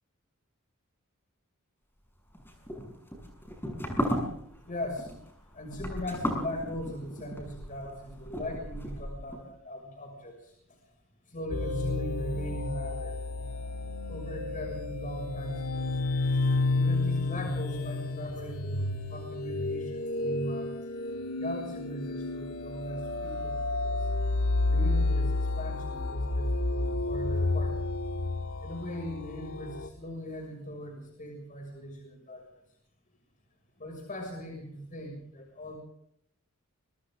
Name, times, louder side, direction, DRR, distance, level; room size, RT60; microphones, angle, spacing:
sound 1, 2.3-9.4, equal, 10° left, 6.8 m, -35 dB
voice 1, 4.6-5.1 5.5-10.8 11.3-13.2 14.1-20.7 21.3-24.1 24.6-27.8 28.6-32.5 33.8-35.8, equal, 35° left, 2 dB, 6.3 m, -39 dB
sound 2, 11.5-29.9, left 2 dB, 80° left, 2.7 m, -31 dB
28.5 x 24.5 x 3.7 m, 0.70 s
head